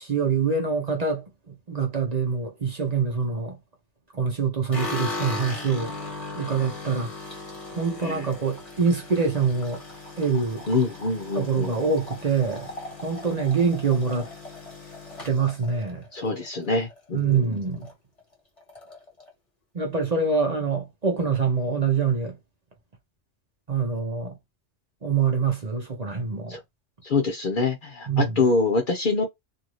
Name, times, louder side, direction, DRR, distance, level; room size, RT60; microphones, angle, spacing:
voice 1, 0.0-3.6 4.1-5.9 6.4-7.1 7.7-9.8 10.2-10.6 11.3-12.7 13.0-14.3 15.2-16.0 17.1-17.9 19.7-22.4 23.7-24.3 25.0-26.6 28.1-28.4, right 5 dB, 40° right, 0.8 m, -25 dB
sound 1, 4.7-17.0 17.3-17.9 18.2-18.3 18.6-19.3, left 2 dB, 30° left, 1.3 m, -38 dB
voice 2, 10.7-11.7 16.1-17.6 26.5-26.6 27.0-29.3, left 3 dB, 50° left, 0.7 m, -25 dB
2.6 x 2.6 x 3.0 m
omnidirectional pair, 1.2 m